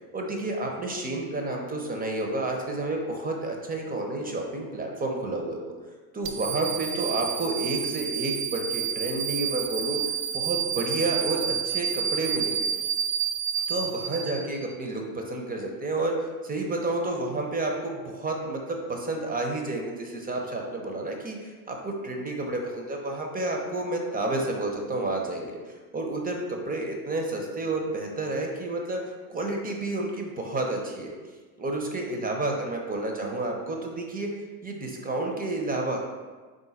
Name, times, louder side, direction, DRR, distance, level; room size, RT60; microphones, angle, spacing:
voice 1, 0.1-5.6 6.1-10.0 10.3-12.7 13.7-16.1 16.4-25.6 25.9-31.1 31.6-34.3 34.6-36.0, right 2 dB, 20° right, 1 dB, 0.6 m, -30 dB
sound 1, 6.2-14.7, right 8 dB, 80° right, 0.6 m, -29 dB
3.7 x 2.5 x 4.0 m, 1.4 s
hypercardioid pair, 85°, 48 cm